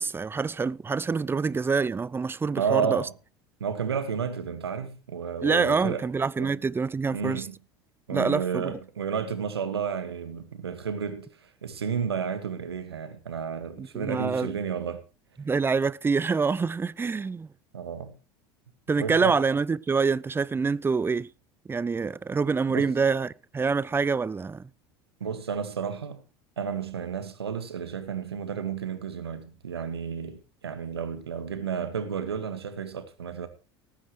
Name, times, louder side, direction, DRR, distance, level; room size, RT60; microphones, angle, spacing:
voice 1, 0.0-3.0 5.4-7.5 8.1-8.7 13.8-14.5 15.4-17.5 18.9-21.3 21.7-24.7, right 5 dB, 15° right, 0.6 m, -26 dB
voice 2, 2.6-3.1 3.6-6.0 6.4-6.6 7.1-7.6 8.1-15.0 17.7-18.2 19.0-19.4 22.7-22.9 25.2-26.2 26.6-33.5, right 7 dB, 90° right, 1.9 m, -32 dB
19.0 x 9.6 x 3.2 m
hypercardioid pair, 80°, 13 cm